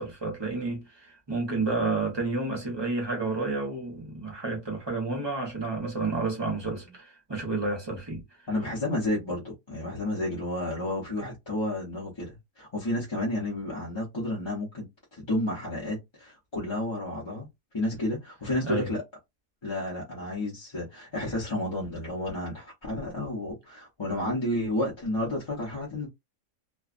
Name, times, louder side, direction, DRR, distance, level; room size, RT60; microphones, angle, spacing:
voice 1, 0.0-8.2 18.6-18.9, right 3 dB, 20° right, 0.8 m, -30 dB
voice 2, 8.5-14.9 15.1-17.5 17.7-19.0 19.6-26.1, left 1 dB, 25° left, 0.8 m, -31 dB
2.6 x 2.3 x 2.4 m
omnidirectional pair, 1.4 m